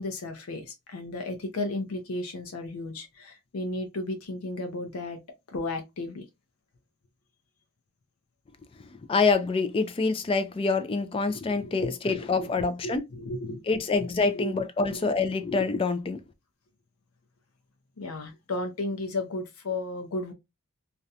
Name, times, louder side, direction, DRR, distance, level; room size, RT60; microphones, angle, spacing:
voice 1, 0.0-5.2 5.5-6.2 11.6-13.6 14.0-14.1 14.3-14.6 14.9-15.0 18.0-20.3, left 2 dB, 85° left, 0.6 m, -34 dB
voice 2, 9.1-13.0 13.7-16.2, left 4 dB, 25° left, 0.3 m, -26 dB
2.4 x 2.2 x 2.7 m
head